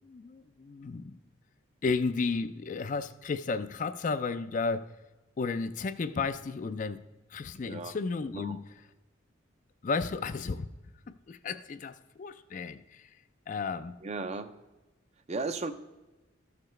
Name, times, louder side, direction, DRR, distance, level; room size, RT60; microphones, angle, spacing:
voice 1, 0.0-1.2 1.8-4.9 5.4-7.0 7.3-8.6 9.8-10.7 11.1-13.1 13.5-14.0, left 4 dB, 40° left, 11 dB, 0.3 m, -33 dB
voice 2, 7.6-7.9 8.3-8.6 14.0-14.5 15.3-15.7, right 3 dB, 35° right, 10 dB, 0.5 m, -35 dB
13.5 x 6.8 x 3.2 m, 1.1 s
head